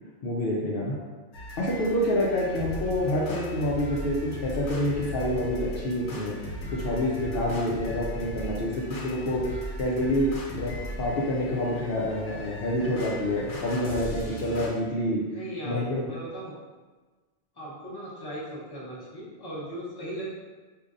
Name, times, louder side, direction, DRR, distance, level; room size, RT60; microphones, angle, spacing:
voice 1, 0.2-0.9 1.6-6.3 6.7-15.2 15.6-16.0, left 1 dB, 60° left, -6 dB, 0.8 m, -27 dB
sound 1, 1.3-14.7, equal, 80° left, 1.0 m, -37 dB
voice 2, 15.2-16.5 17.5-20.3, right 1 dB, 25° left, -6 dB, 0.9 m, -38 dB
5.1 x 2.7 x 2.5 m, 1.3 s
omnidirectional pair, 1.2 m